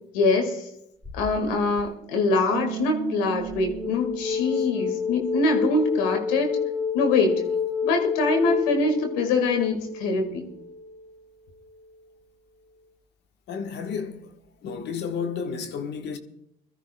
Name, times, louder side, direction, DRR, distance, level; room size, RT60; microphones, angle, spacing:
voice 1, 0.1-0.6 1.1-6.6 6.9-7.4 7.8-10.5, left 3 dB, 85° left, 1.9 m, -24 dB
sound 1, 1.0-1.8 3.5-11.1, left 6 dB, 10° left, 1.6 m, -29 dB
Bass guitar, 2.5-5.6, right 14 dB, 85° right, 1.3 m, -37 dB
voice 2, 13.5-16.2, left 6 dB, 65° left, 1.3 m, -32 dB
23.0 x 13.5 x 2.3 m
hypercardioid pair, 60°, 19 cm